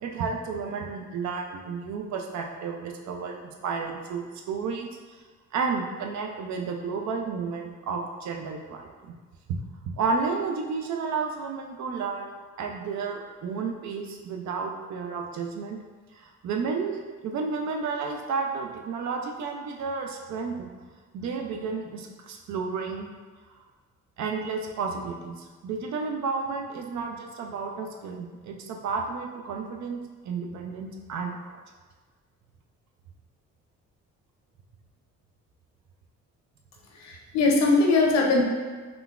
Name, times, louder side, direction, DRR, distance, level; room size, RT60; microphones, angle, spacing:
voice 1, 0.0-4.9 5.5-9.1 10.0-15.8 16.1-20.7 21.1-23.1 24.2-30.0 30.2-31.4, right 5 dB, 65° right, 2 dB, 0.5 m, -32 dB
voice 2, 37.1-38.4, left 3 dB, 60° left, -1 dB, 0.7 m, -21 dB
3.7 x 2.3 x 2.4 m, 1.4 s
cardioid pair, 90°, 30 cm